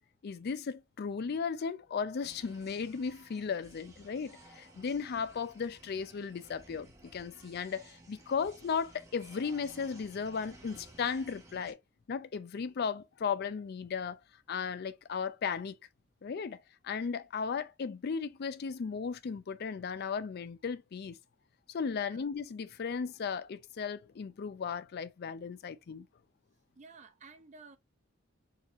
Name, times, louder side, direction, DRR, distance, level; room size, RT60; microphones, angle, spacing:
voice 1, 0.2-11.8 12.1-14.2 14.5-15.8 16.2-16.6 16.8-21.2 21.7-26.1, left 6 dB, 50° left, 0.4 m, -36 dB
sound 1, 2.2-11.7, right 2 dB, 15° right, 0.9 m, -56 dB
voice 2, 26.8-27.8, right 4 dB, 35° right, 0.5 m, -53 dB
4.1 x 2.8 x 2.4 m
head